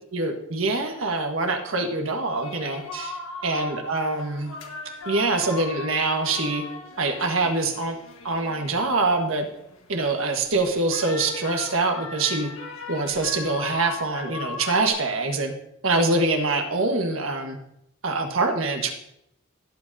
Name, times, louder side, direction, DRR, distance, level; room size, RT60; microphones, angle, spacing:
voice 1, 0.1-3.2 3.4-4.5 5.0-6.6 7.0-8.0 8.2-9.4 9.9-12.5 12.9-15.5 15.8-17.6 18.0-18.9, right 3 dB, 75° right, 3 dB, 1.4 m, -24 dB
sound 1, 2.4-14.9, left 4 dB, 80° left, 1.6 m, -39 dB
16.5 x 7.6 x 2.7 m, 0.80 s
head